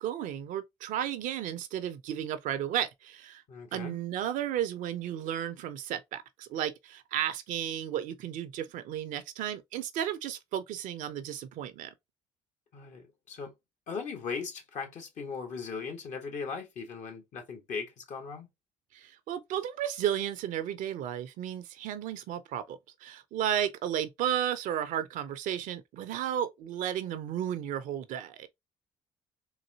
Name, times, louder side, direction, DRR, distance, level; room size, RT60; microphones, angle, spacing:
voice 1, 0.0-3.4 3.7-11.9 18.9-28.5, right 10 dB, 70° right, 0.6 m, -33 dB
voice 2, 3.5-4.0 12.7-13.5 13.9-18.5, left 5 dB, 60° left, 1.3 m, -38 dB
4.0 x 2.6 x 2.8 m
hypercardioid pair, 60°, 14 cm